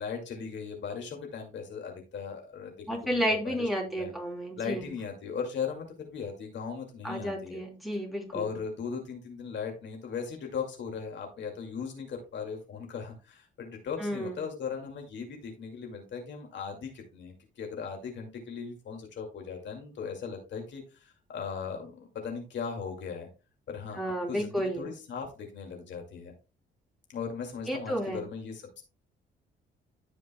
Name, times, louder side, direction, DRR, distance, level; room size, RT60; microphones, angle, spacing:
voice 1, 0.0-3.6 3.9-4.1 4.6-7.6 8.3-23.3 23.7-26.3 27.1-28.8, left 6 dB, 65° left, 3 dB, 2.2 m, -38 dB
voice 2, 2.9-4.9 7.0-8.5 14.0-14.4 23.9-24.9 27.7-28.2, equal, ahead, 0 dB, 3.1 m, -31 dB
14.5 x 5.2 x 2.2 m, 0.31 s
cardioid pair, 90°, 20 cm